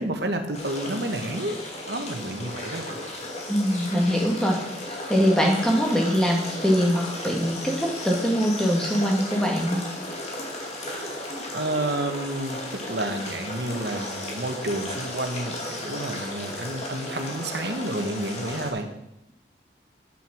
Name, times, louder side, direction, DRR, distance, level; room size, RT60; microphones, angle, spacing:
voice 1, 0.0-1.6 1.9-3.0 11.5-18.9, right 1 dB, 70° right, 6 dB, 1.4 m, -30 dB
sound 1, 0.5-18.7, left 1 dB, 35° left, 2.4 m, -35 dB
voice 2, 3.5-4.6 4.9-9.8, equal, 5° left, 0 dB, 1.9 m, -23 dB
9.1 x 7.6 x 6.2 m, 0.82 s
head